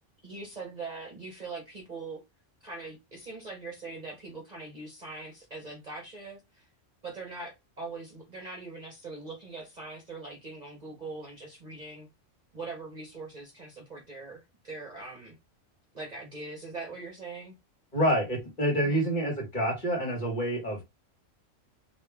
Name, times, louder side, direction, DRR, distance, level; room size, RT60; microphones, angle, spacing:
voice 1, 0.2-2.2 2.6-6.7 7.0-12.1 12.5-15.4 15.9-17.5 18.8-19.0, right 3 dB, 40° right, 0.8 m, -42 dB
voice 2, 17.9-20.8, equal, 40° left, 1.7 m, -27 dB
3.0 x 2.6 x 3.4 m
omnidirectional pair, 1.3 m